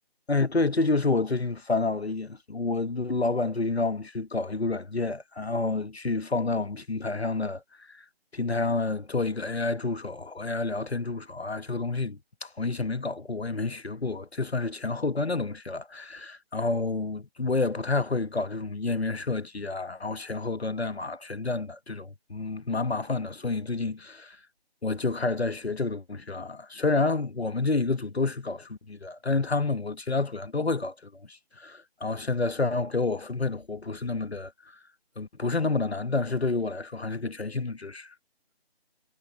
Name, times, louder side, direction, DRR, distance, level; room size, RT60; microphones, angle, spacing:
voice 1, 0.3-7.6 7.9-8.0 8.3-24.4 24.8-34.5 35.2-38.1, left 3 dB, 80° left, 1.4 m, -29 dB
figure-of-eight pair, 165°, 31 cm